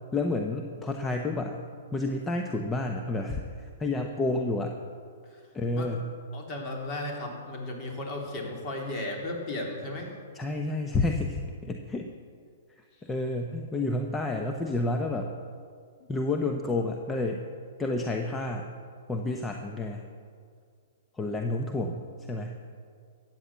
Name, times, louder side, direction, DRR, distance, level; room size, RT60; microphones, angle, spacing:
voice 1, 0.1-1.6 1.9-4.8 5.5-6.0 10.3-12.1 13.0-15.3 16.1-17.4 17.8-18.7 19.1-20.0 21.1-22.6, left 2 dB, 15° left, 3 dB, 0.9 m, -30 dB
voice 2, 6.3-10.1 12.9-13.1 16.0-16.1, left 1 dB, 35° left, 0 dB, 3.4 m, -35 dB
14.0 x 9.1 x 7.4 m, 2.1 s
hypercardioid pair, 115°, 0 cm